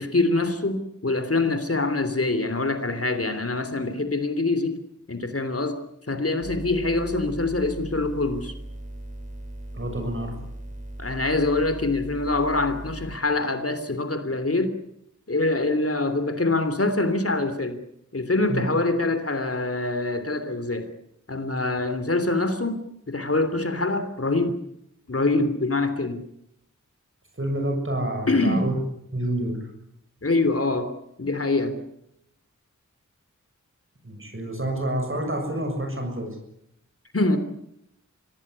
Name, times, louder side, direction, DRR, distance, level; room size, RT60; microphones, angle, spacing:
voice 1, 0.0-4.8 5.1-5.8 6.1-8.5 11.0-14.7 15.3-17.8 18.1-20.9 21.3-24.5 25.1-26.2 28.3-28.6 30.2-30.9 31.2-31.8 37.1-37.4, left 2 dB, 50° left, 9 dB, 3.2 m, -24 dB
sound 1, 6.4-13.2, right 1 dB, 25° right, 5.9 m, -38 dB
voice 2, 9.7-10.4 18.5-18.6 27.4-28.7 29.1-29.5 34.0-36.3, right 1 dB, 40° right, 3 dB, 7.1 m, -28 dB
25.0 x 18.0 x 9.9 m, 0.78 s
wide cardioid pair, 60°, 31 cm